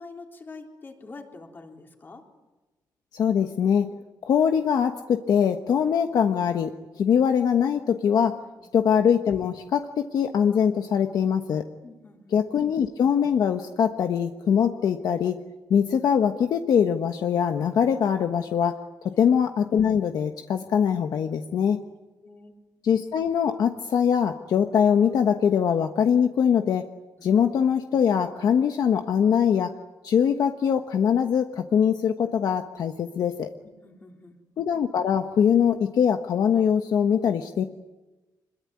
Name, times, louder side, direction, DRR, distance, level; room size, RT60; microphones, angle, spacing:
voice 1, 0.0-2.2 8.6-8.7 11.8-12.6 19.1-19.2 22.2-22.5 27.2-27.3 33.6-34.4, left 3 dB, 30° left, 2 dB, 3.7 m, -46 dB
voice 2, 3.1-3.9 4.3-8.4 8.7-11.6 12.3-15.4 15.7-18.8 19.2-21.8 22.8-26.9 27.2-29.7 30.0-33.5 34.6-37.6, left 7 dB, 60° left, 6 dB, 1.2 m, -22 dB
26.0 x 22.0 x 9.7 m, 1.1 s
wide cardioid pair, 170°, 7 cm